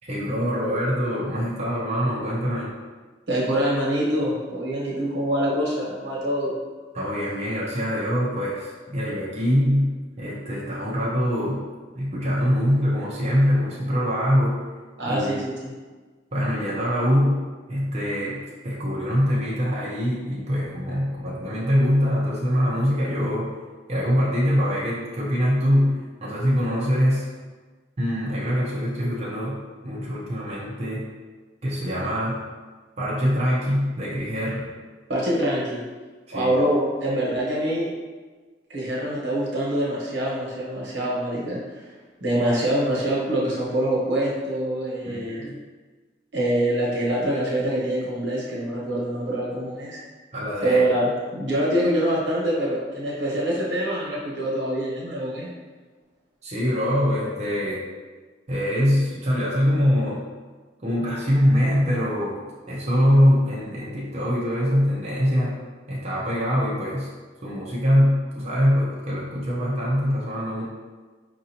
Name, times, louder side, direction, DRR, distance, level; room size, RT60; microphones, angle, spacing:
voice 1, 0.0-2.7 6.9-11.6 11.9-14.6 15.0-15.4 16.3-23.6 23.9-27.3 28.0-29.6 29.8-31.1 31.6-32.4 33.0-34.7 36.3-36.5 45.1-45.6 50.3-50.9 56.4-57.8 58.5-60.2 60.8-62.3 62.7-65.6 65.9-67.1 67.4-70.6, equal, 40° right, -6 dB, 0.6 m, -23 dB
voice 2, 3.3-6.5 15.0-15.7 29.9-30.0 35.1-35.8 36.3-37.9 38.7-41.9 42.2-45.6 46.3-50.0 50.6-55.5, right 1 dB, 85° right, -5 dB, 1.1 m, -25 dB
4.9 x 2.7 x 2.8 m, 1.4 s
head